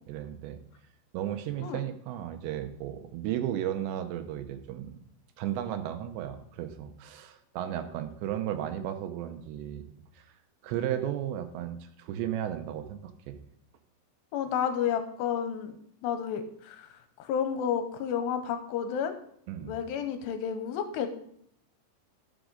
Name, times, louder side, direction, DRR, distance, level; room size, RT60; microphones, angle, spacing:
voice 1, 0.1-0.6 1.1-5.0 5.4-9.8 10.2-10.3 10.6-13.4 19.5-19.8, right 11 dB, 80° right, 8 dB, 2.9 m, -34 dB
voice 2, 14.3-15.8 16.0-16.9 17.2-19.1 19.6-21.1, left 8 dB, 80° left, 8 dB, 2.7 m, -31 dB
13.0 x 6.2 x 3.9 m, 0.68 s
omnidirectional pair, 5.2 m